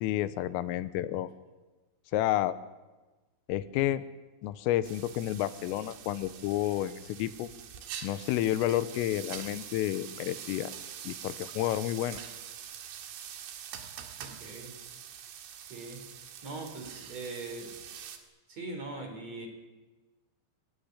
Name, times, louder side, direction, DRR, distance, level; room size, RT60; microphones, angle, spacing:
voice 1, 0.0-1.3 2.1-2.6 3.5-4.0 4.4-7.5 8.0-10.7 11.1-12.2, left 13 dB, 85° left, 13 dB, 3.5 m, -30 dB
sound 1, 4.8-18.2, right 9 dB, 85° right, 4.6 m, -45 dB
voice 2, 14.2-14.8 15.7-16.1 16.4-17.8 18.5-19.5, right 3 dB, 35° right, 4 dB, 4.8 m, -41 dB
27.0 x 16.5 x 9.8 m, 1.2 s
omnidirectional pair, 5.7 m